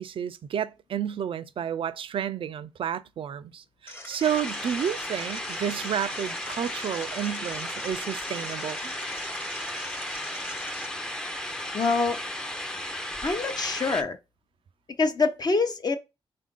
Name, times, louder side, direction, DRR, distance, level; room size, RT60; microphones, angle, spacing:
voice 1, 0.0-8.8, right 9 dB, 65° right, 0.4 m, -31 dB
sound 1, 3.9-10.9, left 2 dB, 20° left, 0.9 m, -43 dB
sound 2, 4.2-14.0, left 1 dB, 5° left, 0.5 m, -34 dB
voice 2, 11.7-12.2 13.2-14.2 15.0-16.0, left 4 dB, 45° left, 0.7 m, -25 dB
3.7 x 2.5 x 3.6 m
cardioid pair, 50°, 10 cm